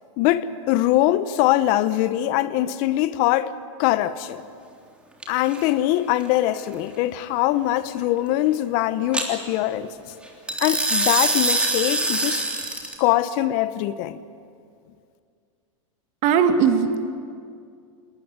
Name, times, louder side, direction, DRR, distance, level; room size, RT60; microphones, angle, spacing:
voice 1, 0.2-3.5 3.8-4.4 5.3-9.9 10.6-12.5 13.0-14.2, left 14 dB, 50° left, 1.0 m, -22 dB
sound 1, 5.2-5.6 9.1-9.3 10.5-12.9, right 2 dB, 5° right, 3.4 m, -23 dB
voice 2, 16.2-17.1, right 6 dB, 45° right, 2.2 m, -19 dB
20.5 x 19.5 x 9.8 m
hypercardioid pair, 125°, 17 cm